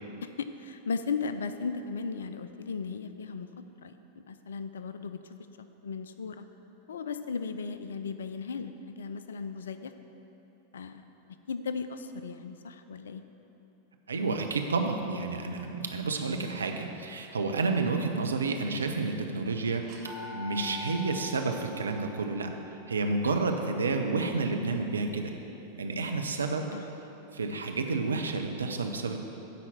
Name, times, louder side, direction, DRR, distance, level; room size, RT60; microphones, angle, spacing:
voice 1, 0.2-3.5 3.8-4.0 4.3-5.2 5.8-6.4 6.9-9.9 10.7-11.0 11.5-13.2 26.7-26.9, left 5 dB, 65° left, 10 dB, 0.4 m, -36 dB
voice 2, 14.1-19.8 20.3-22.5 22.9-25.3 25.8-26.7 27.3-29.2, right 3 dB, 70° right, 4 dB, 0.7 m, -30 dB
sound 1, 18.2-18.7 19.1-19.2 19.8-25.7, left 3 dB, 40° right, 1.2 m, -46 dB
10.0 x 4.2 x 7.1 m, 3.0 s
figure-of-eight pair, 90°, 0 cm